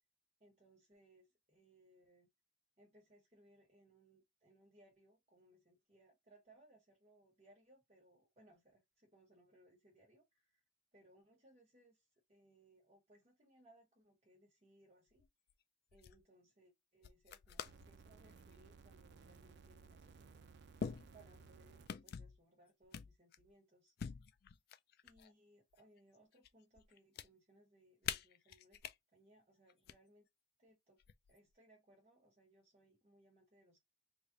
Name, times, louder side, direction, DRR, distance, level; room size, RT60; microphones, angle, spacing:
voice 1, 0.4-2.3 2.8-10.6 10.9-15.2 15.9-20.4 21.1-23.9 25.0-30.3 30.6-31.0 31.3-33.8, right 1 dB, 30° right, 1.2 m, -68 dB
sound 1, 15.1-15.5 15.9-16.2 17.0-17.9 18.3-18.6 19.7-19.8 20.8-21.5 21.9-22.4 22.9-23.5 24.0-25.3 25.7-26.5 26.8-27.3 28.0-28.9 29.7-29.9 31.0-31.5, left 7 dB, 50° left, 0.3 m, -46 dB
sound 2, 17.7-21.9 22.8-22.9, right 4 dB, 55° right, 0.5 m, -60 dB
3.3 x 2.5 x 3.8 m
head